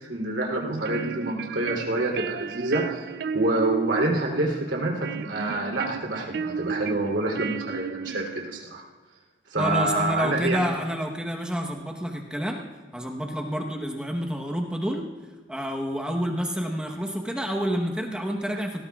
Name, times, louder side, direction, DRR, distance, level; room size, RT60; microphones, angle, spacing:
voice 1, 0.1-3.1 3.3-8.8 9.5-10.6, right 2 dB, 80° right, -2 dB, 3.1 m, -27 dB
sound 1, 0.6-8.6, right 6 dB, 60° right, 0.4 m, -33 dB
voice 2, 9.6-12.6 12.9-15.0 15.5-18.8, equal, 5° right, 1 dB, 1.0 m, -29 dB
19.0 x 18.0 x 2.4 m, 1.3 s
head